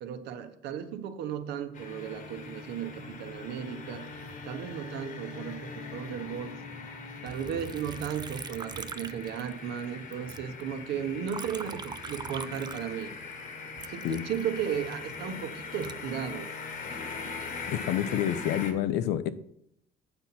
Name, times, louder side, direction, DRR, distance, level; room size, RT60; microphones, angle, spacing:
voice 1, 0.0-4.1 4.4-6.6 7.2-13.1 13.9-16.5, right 8 dB, 80° right, 9 dB, 0.9 m, -35 dB
sound 1, 1.7-18.7, left 4 dB, 55° left, 1.3 m, -41 dB
Liquid, 7.3-9.8 10.1-13.3 13.8-16.8 17.3-17.9, right 6 dB, 25° right, 0.3 m, -43 dB
voice 2, 17.7-19.3, left 11 dB, 80° left, 13 dB, 0.6 m, -28 dB
7.9 x 4.1 x 5.8 m, 0.74 s
cardioid pair, 110°, 17 cm